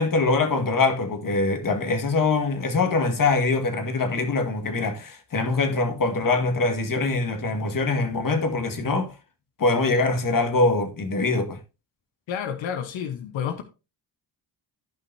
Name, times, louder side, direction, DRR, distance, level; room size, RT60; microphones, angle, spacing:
voice 1, 0.0-9.1 9.6-11.6, left 3 dB, 45° left, 1.8 m, -23 dB
voice 2, 12.3-13.6, left 8 dB, 85° left, 1.0 m, -30 dB
14.5 x 5.5 x 2.7 m
cardioid pair, 80°, 45 cm